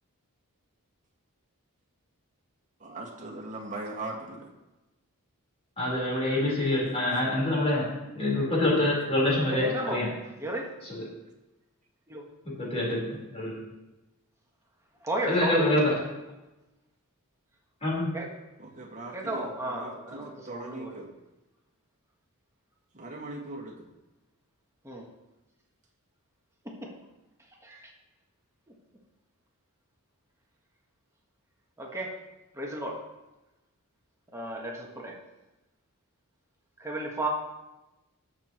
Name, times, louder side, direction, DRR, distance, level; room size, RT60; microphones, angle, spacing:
voice 1, 2.8-4.5 12.6-13.2 18.6-21.1 22.9-23.8, right 2 dB, 35° right, -1 dB, 1.8 m, -40 dB
voice 2, 5.8-7.9 8.1-10.1 10.8-11.1 12.4-13.5 15.3-15.9 17.8-18.1, left 1 dB, 30° left, -5 dB, 4.2 m, -26 dB
voice 3, 9.5-10.0 10.4-10.7 12.1-12.2 15.0-15.7 18.1-18.3 19.1-21.0 24.8-25.1 26.6-26.9 27.6-27.9 31.8-32.1 32.5-33.0 34.3-35.1 36.8-37.3, right 1 dB, 15° right, -1 dB, 1.5 m, -34 dB
20.0 x 6.7 x 3.1 m, 1.0 s
head